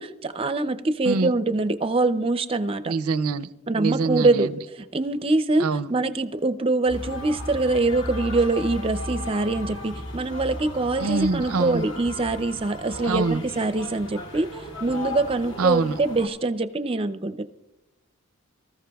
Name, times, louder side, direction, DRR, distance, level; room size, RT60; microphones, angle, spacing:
voice 1, 0.0-2.9 3.7-4.5 4.8-14.5 14.8-17.4, right 2 dB, 25° right, 0.5 m, -24 dB
voice 2, 2.9-3.5 3.8-4.6 5.6-5.9 11.0-11.9 13.1-13.4 15.6-16.0, right 4 dB, 90° right, 0.5 m, -25 dB
sound 1, 6.9-16.3, left 1 dB, 60° left, 1.7 m, -35 dB
24.5 x 14.0 x 2.3 m
head